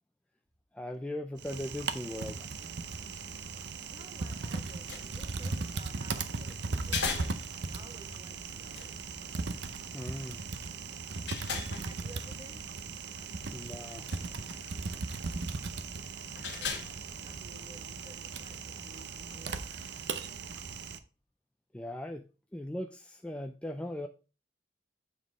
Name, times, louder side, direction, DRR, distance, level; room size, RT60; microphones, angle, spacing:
voice 1, 0.7-2.5 9.9-10.5 13.5-14.1 21.7-22.2 22.5-24.1, left 1 dB, 5° left, 4 dB, 0.3 m, -39 dB
Typing, 1.4-21.0, right 4 dB, 70° right, 0.6 m, -38 dB
voice 2, 3.8-7.2 7.7-8.9 11.8-12.6 16.5-19.7, right 1 dB, 25° right, 3 dB, 1.2 m, -54 dB
sound 1, 4.6-18.1, left 5 dB, 75° left, 1.3 m, -43 dB
7.2 x 4.0 x 4.8 m, 0.33 s
head